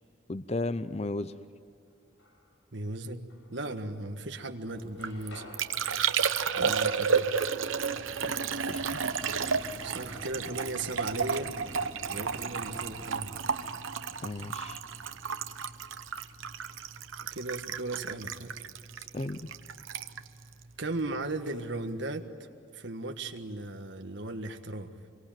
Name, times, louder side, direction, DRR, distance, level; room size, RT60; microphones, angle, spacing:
voice 1, 0.3-1.3 6.6-6.7 8.2-9.0 14.2-14.8 19.1-19.5, left 2 dB, 30° left, 13 dB, 0.6 m, -35 dB
sound 1, 1.9-2.7 3.3-4.3 4.6-8.5, left 1 dB, 85° left, 5.0 m, -54 dB
voice 2, 2.7-5.4 6.5-7.4 9.8-11.5 12.1-13.3 17.3-18.5 20.8-22.3 22.7-24.9, right 2 dB, 65° right, 5 dB, 1.6 m, -37 dB
Liquid, 4.8-21.4 21.7-22.2, right 6 dB, 85° right, 1.0 m, -32 dB
sound 2, 6.7-17.8 18.4-18.5, equal, 15° right, 5.1 m, -49 dB
26.0 x 23.5 x 9.1 m, 2.4 s
head